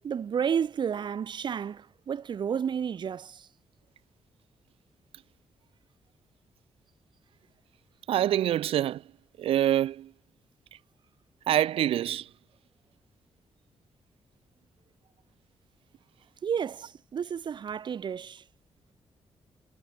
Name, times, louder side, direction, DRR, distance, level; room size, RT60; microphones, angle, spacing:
voice 1, 0.0-3.5 16.4-18.4, right 7 dB, 50° right, 3.1 m, -31 dB
voice 2, 8.1-9.0 9.4-10.1 11.5-12.3, right 11 dB, 75° right, 0.5 m, -25 dB
cardioid pair, 135°, 10 cm